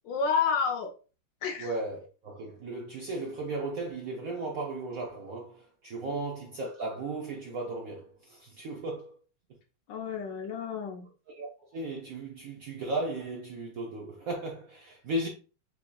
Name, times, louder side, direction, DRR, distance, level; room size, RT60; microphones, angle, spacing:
voice 1, 0.0-0.9 1.4-1.7 6.0-6.2 9.9-11.1, left 6 dB, 70° left, 1.3 m, -30 dB
voice 2, 1.6-9.2 11.3-15.3, right 2 dB, 65° right, 0.9 m, -36 dB
7.3 x 2.8 x 2.3 m
omnidirectional pair, 2.3 m